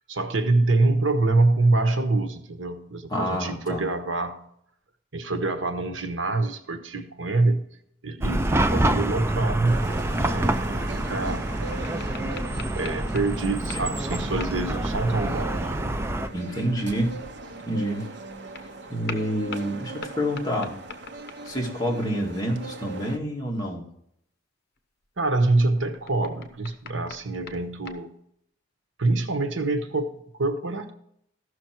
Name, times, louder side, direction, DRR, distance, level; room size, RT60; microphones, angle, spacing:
voice 1, 0.1-4.4 5.1-7.6 8.0-9.9 10.2-11.5 12.2-12.4 12.7-15.7 25.2-28.1 29.0-30.9, right 2 dB, 80° right, 7 dB, 1.2 m, -25 dB
voice 2, 3.1-3.8 16.3-17.1 17.7-18.1 18.9-20.8 21.4-23.8, equal, 20° left, -2 dB, 2.1 m, -28 dB
Chatter / Car passing by / Traffic noise roadway noise, 8.2-16.3, right 1 dB, 15° right, 0.5 m, -26 dB
sound 1, 9.7-23.2, right 3 dB, 60° right, 1.0 m, -40 dB
sound 2, 11.8-14.0 14.4-14.7 18.5-18.7 19.1-21.7 24.8-28.0, left 5 dB, 55° left, 1.0 m, -43 dB
14.5 x 6.3 x 4.5 m, 0.72 s
head